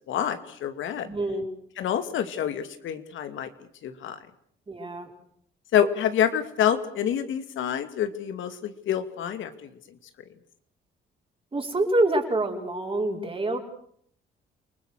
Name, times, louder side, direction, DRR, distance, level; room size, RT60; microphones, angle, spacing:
voice 1, 0.1-1.1 1.8-3.5 3.8-4.2 5.7-9.7, left 9 dB, 75° left, 9 dB, 2.4 m, -27 dB
voice 2, 1.0-1.4 4.7-5.1 11.5-13.6, right 2 dB, 25° right, 2 dB, 5.3 m, -26 dB
29.0 x 19.5 x 6.6 m, 0.66 s
cardioid pair, 90°, 20 cm